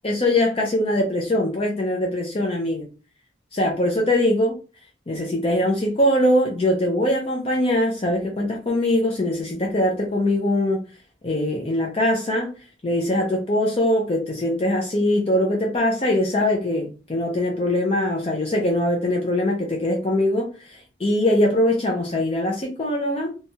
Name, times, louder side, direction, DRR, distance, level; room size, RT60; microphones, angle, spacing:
voice 1, 0.0-2.9 3.5-4.6 5.1-10.8 11.2-12.5 12.8-23.3, left 1 dB, 30° left, 0 dB, 0.4 m, -22 dB
3.0 x 2.2 x 2.7 m, 0.34 s
head